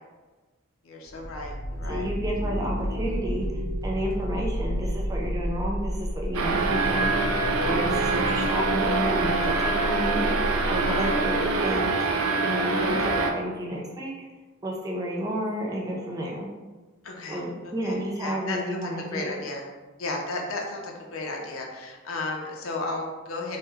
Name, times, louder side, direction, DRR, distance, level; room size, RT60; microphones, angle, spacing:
voice 1, 0.8-2.1 17.0-17.4 17.8-19.6 20.0-23.6, left 2 dB, 80° left, 0 dB, 0.6 m, -34 dB
sound 1, 1.1-11.7, equal, 45° right, 0.7 m, -31 dB
voice 2, 1.9-7.2 7.6-10.2 10.7-12.0 12.4-14.1 14.6-16.5 17.3-19.3, equal, 15° right, -2 dB, 0.4 m, -31 dB
sound 2, 6.3-13.3, right 3 dB, 85° right, 0.4 m, -25 dB
3.0 x 2.1 x 3.4 m, 1.3 s
head